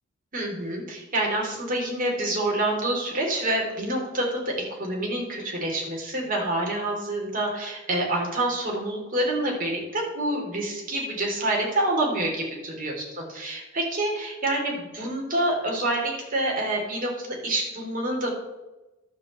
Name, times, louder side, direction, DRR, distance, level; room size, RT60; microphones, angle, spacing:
voice 1, 0.3-18.3, right 1 dB, 45° right, -1 dB, 3.5 m, -27 dB
11.5 x 5.5 x 8.1 m, 1.0 s
head